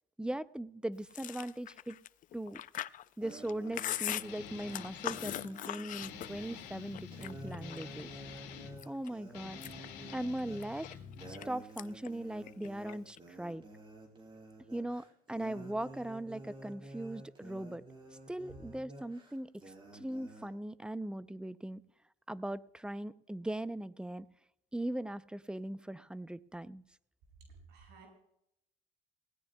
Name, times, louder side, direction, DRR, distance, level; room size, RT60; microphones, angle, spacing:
voice 1, 0.2-2.0 2.3-2.6 3.2-8.1 8.9-9.6 10.1-10.9 11.3-13.6 14.7-17.8 18.3-19.5 19.9-21.8 22.3-24.3 24.7-26.8, right 1 dB, 5° right, 15 dB, 0.4 m, -39 dB
Chewing mastication, 1.1-6.6 6.9-8.0 8.5-9.1 9.5-11.5 11.8-12.1 12.4-13.2, left 12 dB, 50° left, 0.4 m, -40 dB
sound 1, 3.2-20.5, right 2 dB, 30° right, 4.1 m, -51 dB
Guitar, 4.2-5.5 5.9-8.8 9.3-11.5, left 8 dB, 90° left, 2.1 m, -48 dB
voice 2, 27.4-28.1, right 4 dB, 85° right, 1 dB, 5.9 m, -55 dB
19.0 x 17.0 x 2.2 m, 0.77 s
cardioid pair, 110°, 17 cm